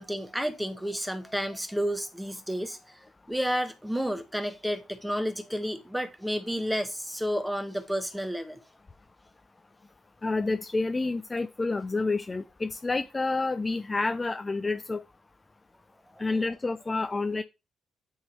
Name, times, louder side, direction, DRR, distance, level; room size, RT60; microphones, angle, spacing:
voice 1, 0.0-8.6 16.1-16.2, equal, ahead, 1.3 m, -31 dB
voice 2, 10.2-15.0 16.2-17.4, left 3 dB, 25° left, 0.6 m, -29 dB
9.5 x 3.7 x 4.5 m
cardioid pair, 90°, 0 cm